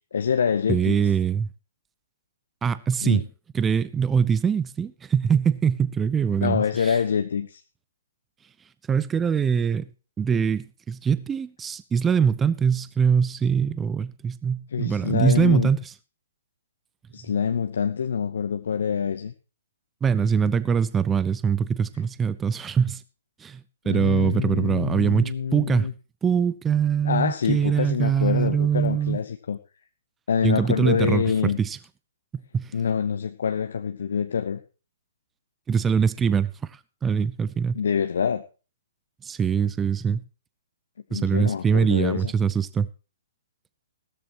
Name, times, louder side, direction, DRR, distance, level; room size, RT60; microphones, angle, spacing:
voice 1, 0.1-1.1 3.0-3.3 6.4-7.6 14.7-15.7 17.1-19.3 23.8-25.9 27.0-29.6 30.3-31.6 32.7-34.6 37.7-38.4 41.1-42.3, left 7 dB, 60° left, 0.9 m, -26 dB
voice 2, 0.7-1.5 2.6-3.2 3.5-6.9 8.9-9.9 10.2-15.9 20.0-23.0 23.4-23.6 23.9-25.9 26.2-29.2 30.4-31.8 32.5-32.7 35.7-36.5 37.0-37.8 39.2-40.2 41.1-42.9, right 7 dB, 15° right, 0.6 m, -23 dB
16.5 x 13.5 x 3.0 m
figure-of-eight pair, 120°, 0 cm